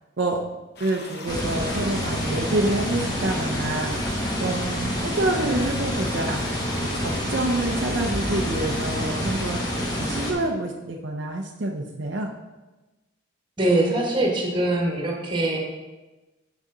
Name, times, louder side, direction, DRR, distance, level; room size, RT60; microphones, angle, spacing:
sound 1, 0.8-10.3, left 2 dB, 50° left, 0.9 m, -40 dB
voice 1, 0.8-4.1 4.4-6.4 6.8-12.3, right 2 dB, 65° right, 2 dB, 0.6 m, -27 dB
sound 2, 1.3-10.3, equal, 20° left, 1.3 m, -27 dB
sound 3, 1.5-7.5, equal, 90° left, 2.0 m, -45 dB
voice 2, 13.6-15.6, right 1 dB, 25° right, -1 dB, 1.4 m, -22 dB
7.3 x 6.4 x 3.8 m, 1.1 s
head